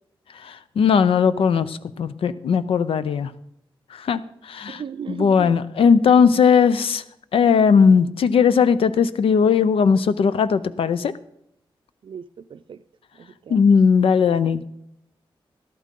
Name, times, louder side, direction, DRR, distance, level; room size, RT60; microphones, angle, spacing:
voice 1, 0.4-3.3 3.9-4.8 5.1-7.0 7.3-11.1 13.5-14.6, left 6 dB, 80° left, 14 dB, 0.6 m, -18 dB
voice 2, 4.7-5.5 12.0-12.8 13.2-13.6, right 7 dB, 65° right, 14 dB, 0.4 m, -36 dB
12.5 x 12.0 x 3.7 m, 0.77 s
wide cardioid pair, 105°, 9 cm